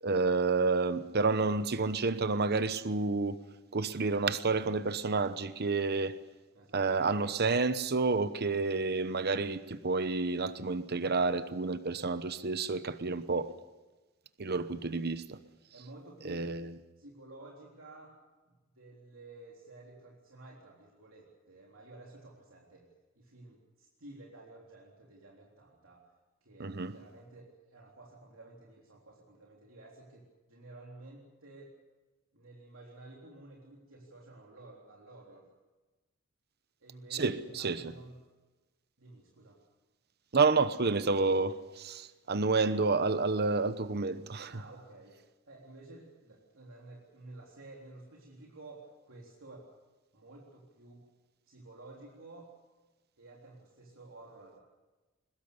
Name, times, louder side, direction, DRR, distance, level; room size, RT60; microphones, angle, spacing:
voice 1, 0.0-3.4 3.7-6.1 6.7-13.5 14.4-15.4 16.2-16.7 26.6-26.9 37.1-37.8 40.3-44.5, right 4 dB, 50° right, 1.0 m, -29 dB
voice 2, 6.5-7.1 14.5-14.6 14.8-15.1 15.7-16.5 17.0-18.2 18.5-22.9 23.2-26.0 26.4-31.7 32.3-35.5 36.8-38.2 39.0-39.6 44.5-45.2 45.5-49.7 50.1-51.0 51.5-52.5 53.2-54.6, right 2 dB, 75° right, 3.7 m, -52 dB
22.0 x 21.0 x 6.8 m
head